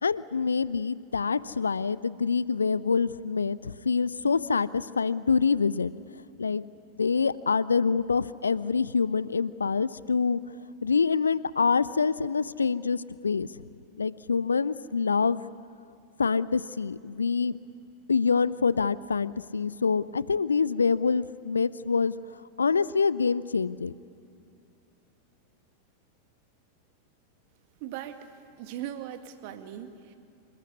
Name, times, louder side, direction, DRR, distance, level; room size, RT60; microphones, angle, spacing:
voice 1, 0.0-5.9 6.4-6.6 7.0-10.4 10.8-13.5 14.0-15.4 16.2-17.6 18.1-22.1 22.6-23.9, left 5 dB, 75° left, 19 dB, 0.5 m, -26 dB
voice 2, 27.8-28.3 28.6-30.2, right 11 dB, 45° right, 8 dB, 2.0 m, -39 dB
27.5 x 20.0 x 9.8 m, 2.6 s
figure-of-eight pair, 90°, 0 cm